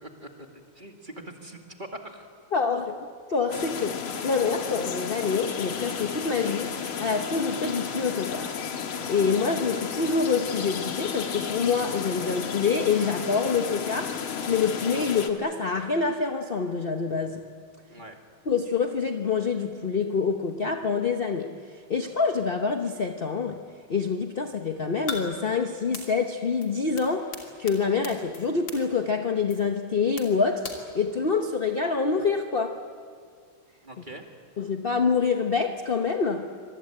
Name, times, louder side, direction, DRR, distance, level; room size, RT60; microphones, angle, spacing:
voice 1, 0.0-2.3 17.9-18.2 33.8-34.2, right 1 dB, 25° right, 3 dB, 2.2 m, -43 dB
voice 2, 2.5-6.7 7.0-8.5 9.1-14.2 14.5-17.4 18.5-23.6 23.9-30.7 30.9-32.8 34.6-36.5, left 5 dB, 40° left, 5 dB, 0.8 m, -26 dB
sound 1, 3.5-15.3, left 7 dB, 80° left, 2.3 m, -33 dB
sound 2, 25.1-25.2 25.9-26.0 26.6-26.7 27.0-27.1 27.3-27.4 27.7-27.8 28.0-28.4 28.7-28.8 29.5-29.6 30.2-30.3 30.6-30.7, left 4 dB, 60° left, 3.5 m, -35 dB
25.5 x 21.5 x 9.0 m, 2.1 s
omnidirectional pair, 2.3 m